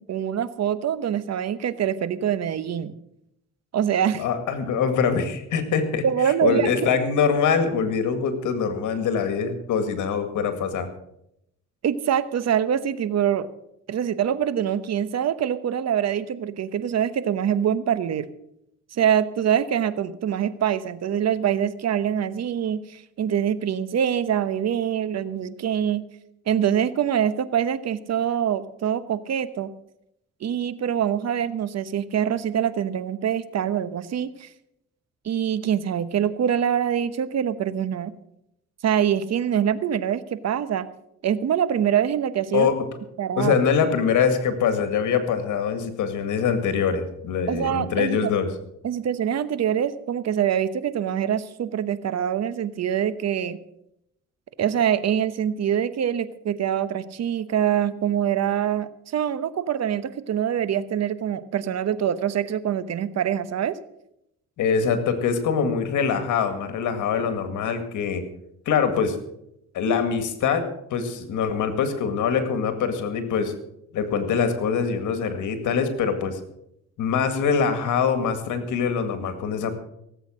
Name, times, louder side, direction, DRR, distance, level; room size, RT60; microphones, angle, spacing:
voice 1, 0.0-2.9 3.7-4.2 6.0-6.9 11.8-13.5 13.9-18.3 18.9-26.0 26.5-29.7 30.4-34.5 35.2-38.1 38.8-40.9 41.2-42.7 43.2-43.5 47.5-48.3 48.8-53.6 54.6-63.8, right 9 dB, 60° right, 14 dB, 1.0 m, -24 dB
voice 2, 4.2-10.9 42.5-42.8 43.4-48.5 64.6-68.2 68.7-69.2 69.7-73.5 73.9-76.4 77.0-79.7, left 6 dB, 80° left, 9 dB, 2.1 m, -24 dB
17.5 x 8.2 x 6.5 m, 0.79 s
cardioid pair, 90°, 30 cm